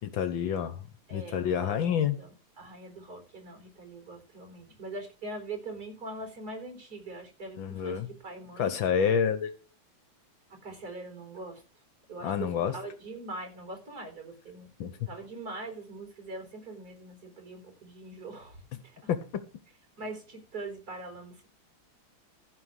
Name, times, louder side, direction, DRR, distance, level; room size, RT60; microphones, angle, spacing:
voice 1, 0.1-0.8 1.1-2.2 7.6-8.1 8.6-9.5 12.2-12.7 14.8-14.9 19.1-19.4, left 7 dB, 65° left, 11 dB, 1.6 m, -28 dB
voice 2, 1.1-2.3 2.6-8.8 10.5-11.8 12.1-14.7 15.1-19.1 20.0-21.5, right 2 dB, 45° right, 4 dB, 4.9 m, -42 dB
15.0 x 5.4 x 6.4 m, 0.35 s
omnidirectional pair, 2.4 m